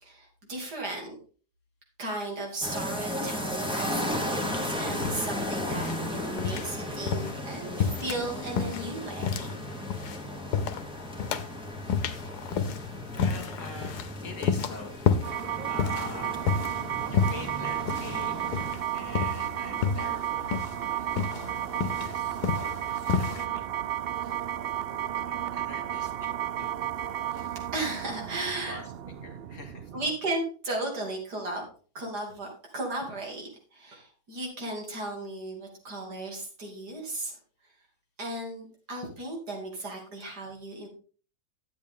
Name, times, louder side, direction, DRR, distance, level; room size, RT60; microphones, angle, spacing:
voice 1, 0.0-1.2 2.0-9.5 24.2-24.3 27.3-28.8 29.9-31.7 32.0-32.5 32.7-37.4 38.2-40.9, right 2 dB, 85° right, 0 dB, 3.3 m, -35 dB
sound 1, 2.6-18.7, left 1 dB, 5° right, 1.3 m, -35 dB
sound 2, 4.5-23.4, left 6 dB, 80° left, 1.3 m, -31 dB
voice 2, 13.1-15.0 15.7-16.4 17.1-24.0 24.7-26.8 28.6-29.9, left 3 dB, 50° left, 4 dB, 2.0 m, -45 dB
sound 3, 15.2-30.2, right 11 dB, 70° right, 0.5 m, -33 dB
10.5 x 8.0 x 3.6 m, 0.40 s
omnidirectional pair, 1.7 m